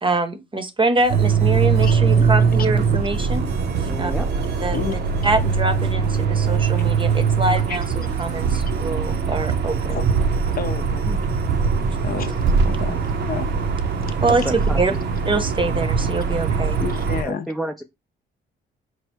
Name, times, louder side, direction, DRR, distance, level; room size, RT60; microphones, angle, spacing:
voice 1, 0.0-3.5 4.0-4.1 4.6-7.8 8.2-10.0 14.2-14.9 15.3-16.8, right 2 dB, 25° right, 0.7 m, -24 dB
sound 1, 1.0-17.3, right 2 dB, 90° right, 1.0 m, -44 dB
sound 2, 1.1-17.2, right 5 dB, 60° right, 0.6 m, -21 dB
voice 2, 3.8-4.3 10.7-11.2 14.3-15.0 17.2-17.8, right 1 dB, ahead, 0.4 m, -31 dB
voice 3, 10.3-11.0 12.0-12.4 12.6-13.5 14.0-14.1 16.8-17.5, left 7 dB, 50° left, 0.5 m, -30 dB
4.4 x 2.1 x 4.4 m
cardioid pair, 90°, 20 cm